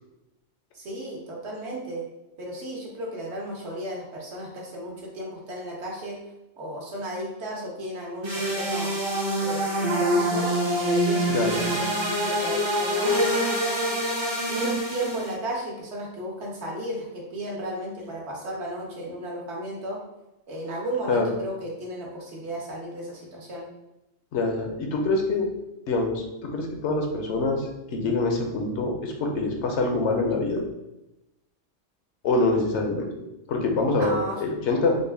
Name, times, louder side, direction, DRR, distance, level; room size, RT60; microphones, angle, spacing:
voice 1, 0.7-2.1 2.4-6.2 6.6-9.0 9.4-10.5 10.8-12.0 12.2-13.3 14.5-20.0 20.5-23.7 34.0-34.4, right 1 dB, 65° right, -2 dB, 1.1 m, -34 dB
sound 1, 8.2-15.3, equal, 30° right, 0.5 m, -25 dB
voice 2, 11.3-11.7 21.1-21.3 24.3-25.5 25.9-30.6 32.2-33.1 33.5-35.0, left 3 dB, 70° left, 2 dB, 0.9 m, -25 dB
3.7 x 2.2 x 3.3 m, 0.94 s
omnidirectional pair, 1.3 m